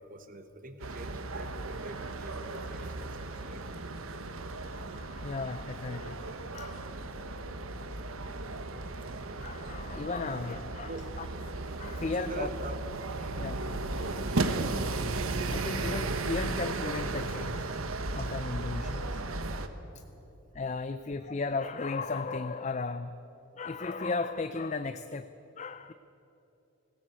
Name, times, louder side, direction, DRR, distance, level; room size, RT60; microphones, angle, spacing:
voice 1, 0.0-4.0 10.2-10.4 10.9-11.0 12.2-12.8 13.1-13.5 13.9-14.2, right 2 dB, 40° right, 9 dB, 1.2 m, -44 dB
sound 1, 0.8-19.7, right 2 dB, 80° right, 1.2 m, -35 dB
voice 2, 4.7-6.2 6.5-6.9 8.2-8.3 9.4-10.9 11.5-12.5 13.4-13.6 15.5-17.7 18.1-19.2 20.5-23.2 23.6-25.3 25.6-25.9, left 3 dB, 35° left, 11 dB, 0.4 m, -35 dB
19.5 x 16.5 x 8.2 m, 3.0 s
head